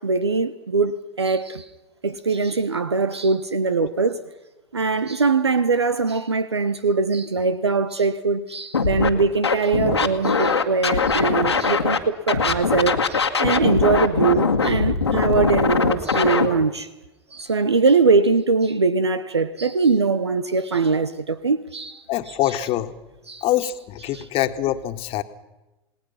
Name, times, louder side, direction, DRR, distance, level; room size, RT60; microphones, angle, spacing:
voice 1, 0.0-1.7 2.0-4.2 4.7-16.9 17.3-22.0 23.3-23.4 24.1-24.2, right 4 dB, 90° right, 1.0 m, -22 dB
Scratching (performance technique), 8.7-9.1 9.4-12.0 12.3-16.5, left 5 dB, 90° left, 1.9 m, -21 dB
voice 2, 22.1-22.9 23.4-25.2, left 13 dB, 45° left, 1.8 m, -24 dB
28.5 x 19.5 x 5.7 m
figure-of-eight pair, 90°, 14 cm